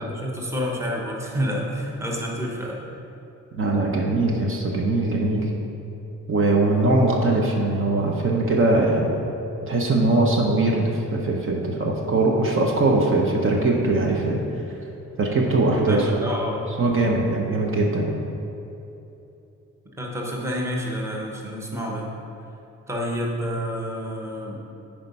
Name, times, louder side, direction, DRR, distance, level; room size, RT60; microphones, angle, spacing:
voice 1, 0.0-2.8 15.9-16.7 20.0-22.1 22.9-24.6, equal, 10° right, -2 dB, 1.0 m, -29 dB
voice 2, 3.5-5.5 6.3-9.1 9.6-14.4 15.2-16.1 16.8-18.1, right 2 dB, 40° right, -1 dB, 0.9 m, -21 dB
10.5 x 4.6 x 5.4 m, 2.9 s
wide cardioid pair, 155°, 31 cm